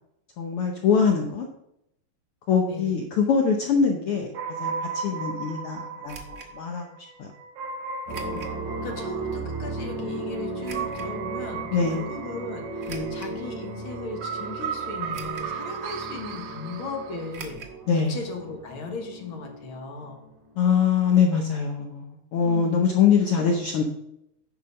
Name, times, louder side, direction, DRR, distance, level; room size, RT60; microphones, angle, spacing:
voice 1, 0.4-1.5 2.5-4.3 4.6-6.2 6.6-6.9 7.2-7.3 11.7-12.0 12.9-13.1 17.9-18.1 20.6-23.8, left 6 dB, 70° left, 2 dB, 1.3 m, -23 dB
voice 2, 2.6-3.0 8.2-17.6 17.9-20.2 22.4-22.8 23.3-23.6, left 4 dB, 50° left, 3 dB, 1.8 m, -37 dB
sound 1, 4.3-17.4, right 6 dB, 85° right, 1.1 m, -36 dB
sound 2, 6.1-6.5 8.1-8.6 9.1-9.2 10.6-11.1 12.8-13.4 14.0-14.1 15.1-15.6 15.9-16.0 17.3-17.8 18.0-18.1 18.4-18.5, right 5 dB, 70° right, 0.8 m, -42 dB
sound 3, 8.1-20.8, right 3 dB, 50° right, 4.8 m, -36 dB
10.5 x 4.9 x 5.6 m, 0.80 s
omnidirectional pair, 3.5 m